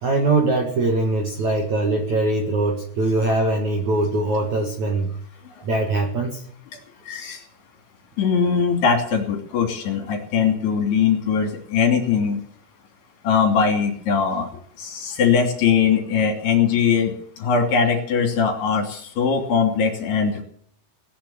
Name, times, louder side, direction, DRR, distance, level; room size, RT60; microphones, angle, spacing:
voice 1, 0.0-5.1 5.6-6.4, right 2 dB, 55° right, 2 dB, 2.3 m, -22 dB
voice 2, 7.1-7.4 8.2-12.4 13.2-14.5 14.8-20.4, left 6 dB, 60° left, 3 dB, 4.7 m, -21 dB
18.5 x 10.5 x 7.4 m, 0.62 s
omnidirectional pair, 5.6 m